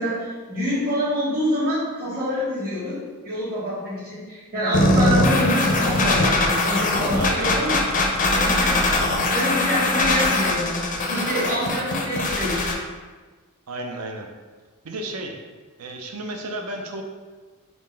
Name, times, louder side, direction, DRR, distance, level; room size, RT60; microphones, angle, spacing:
voice 1, 0.0-7.8 8.1-9.0 9.3-12.8, equal, 45° right, -8 dB, 1.5 m, -26 dB
sound 1, 4.7-12.7, left 2 dB, 35° left, 0.4 m, -21 dB
voice 2, 7.1-7.6 13.7-14.3 14.8-15.4 15.8-17.0, right 2 dB, 75° right, 3 dB, 0.5 m, -32 dB
3.8 x 2.5 x 3.3 m, 1.4 s
head